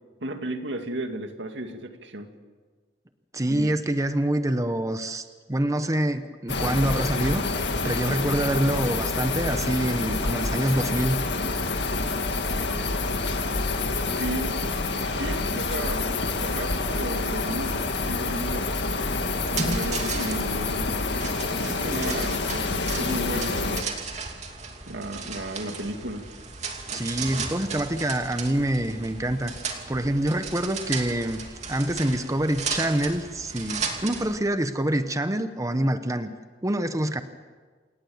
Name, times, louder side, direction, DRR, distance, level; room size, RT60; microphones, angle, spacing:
voice 1, 0.2-2.3 3.5-3.7 14.1-14.6 15.1-17.8 18.1-18.7 19.5-21.0 21.7-24.0 24.9-26.3, right 1 dB, 80° right, 5 dB, 2.3 m, -34 dB
voice 2, 3.3-7.4 7.8-11.2 26.9-29.5 29.9-36.3 36.6-37.2, right 1 dB, 20° right, 9 dB, 0.9 m, -26 dB
sound 1, 6.5-23.8, left 3 dB, 70° left, 2.1 m, -27 dB
sound 2, 19.3-34.4, right 4 dB, 40° right, 2.7 m, -35 dB
28.0 x 18.5 x 7.2 m, 1.5 s
head